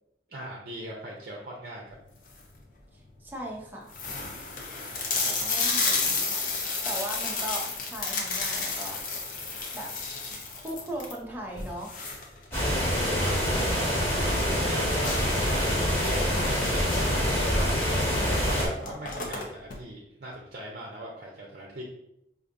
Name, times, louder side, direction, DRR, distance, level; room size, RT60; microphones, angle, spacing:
voice 1, 0.3-2.0 4.7-5.6 12.6-18.0 18.3-21.8, right 1 dB, 60° right, -2 dB, 0.6 m, -40 dB
sound 1, 2.1-2.6 3.2-3.3 3.5-3.6 3.9-13.5 13.8-13.9 14.3-14.4 15.0-17.3 18.2-18.3 18.6-19.8, left 4 dB, 50° left, 0.6 m, -31 dB
voice 2, 3.2-3.9 5.4-6.4 6.8-9.0 9.7-9.9 10.5-11.9, right 1 dB, 10° right, -2 dB, 0.6 m, -38 dB
sound 2, 12.5-18.7, equal, 15° left, 1.2 m, -25 dB
4.9 x 2.6 x 2.5 m, 0.80 s
head